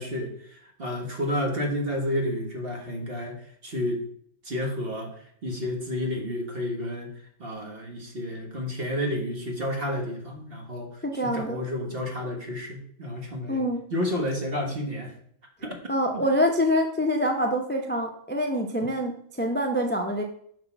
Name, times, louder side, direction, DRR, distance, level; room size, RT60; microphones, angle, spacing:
voice 1, 0.0-4.0 4.4-5.1 5.4-7.1 7.4-13.6 13.9-15.1 15.6-15.7 16.1-16.2, left 1 dB, 50° right, 1 dB, 1.6 m, -31 dB
voice 2, 11.0-11.6 13.5-13.8 15.9-20.2, equal, 10° left, 3 dB, 0.6 m, -25 dB
6.0 x 5.6 x 4.5 m, 0.65 s
omnidirectional pair, 1.3 m